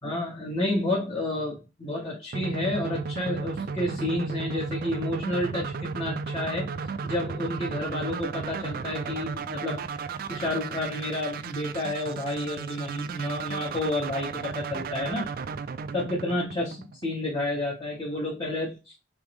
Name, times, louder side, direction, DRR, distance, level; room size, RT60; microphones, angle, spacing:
voice 1, 0.0-6.7 7.0-9.8 10.3-15.3 15.9-19.0, left 1 dB, 20° left, -4 dB, 0.9 m, -30 dB
sound 1, 2.3-17.2, right 5 dB, 50° right, 0.3 m, -34 dB
3.5 x 2.9 x 3.2 m, 0.29 s
head